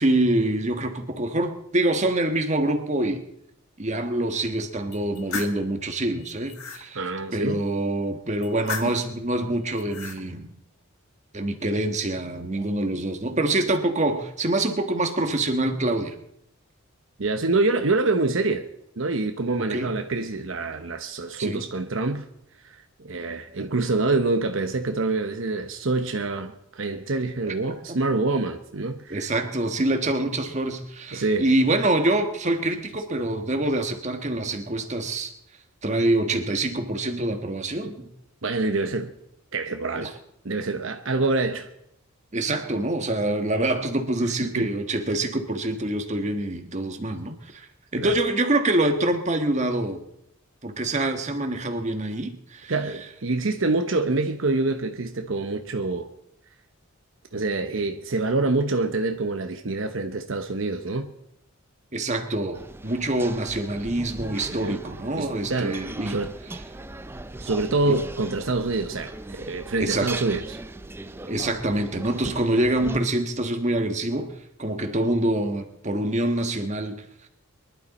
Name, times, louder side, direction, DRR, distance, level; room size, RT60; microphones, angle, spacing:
voice 1, 0.0-3.2 3.8-7.1 7.3-10.5 11.3-16.2 19.6-19.9 21.4-21.6 29.1-35.3 35.8-38.1 40.0-40.1 42.3-47.7 47.9-50.0 50.6-52.7 61.9-66.2 67.9-68.0 69.8-70.1 71.3-74.3 74.6-77.3, right 1 dB, 35° right, 1.4 m, -25 dB
sound 1, 4.9-5.6 6.2-6.8 8.4-9.1 9.7-10.2, left 5 dB, 90° left, 1.8 m, -35 dB
voice 2, 6.9-7.6 17.2-18.7 19.0-22.3 22.6-29.3 31.1-31.5 38.4-39.1 39.5-40.1 40.4-41.7 44.4-44.7 48.0-48.2 52.7-56.1 57.3-61.1 64.6-64.8 65.2-65.8 66.1-66.3 67.4-70.6, right 3 dB, 65° right, 0.9 m, -26 dB
sound 2, 62.5-73.0, right 2 dB, 10° right, 0.5 m, -39 dB
23.5 x 11.5 x 4.2 m
head